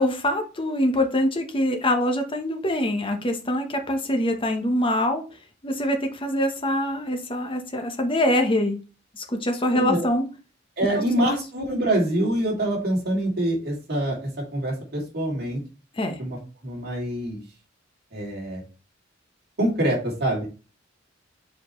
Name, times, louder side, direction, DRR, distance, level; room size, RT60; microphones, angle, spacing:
voice 1, 0.0-5.2 5.6-8.8 9.1-10.2 11.2-11.3 15.9-16.2, left 1 dB, 25° left, 5 dB, 1.0 m, -24 dB
voice 2, 9.7-10.0 10.8-15.6 16.2-16.4 16.6-17.4 18.1-18.6 19.6-20.5, right 1 dB, 55° right, -2 dB, 2.6 m, -25 dB
7.0 x 4.5 x 3.1 m, 0.34 s
head